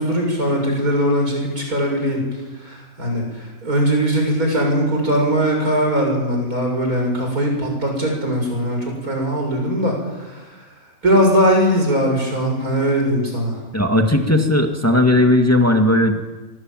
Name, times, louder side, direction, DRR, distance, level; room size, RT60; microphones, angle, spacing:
voice 1, 0.0-2.2 2.6-10.5 11.0-13.6, equal, 80° right, 1 dB, 7.5 m, -20 dB
voice 2, 13.7-16.2, left 1 dB, 10° left, 4 dB, 1.9 m, -16 dB
24.0 x 19.5 x 9.1 m, 1.2 s
omnidirectional pair, 1.5 m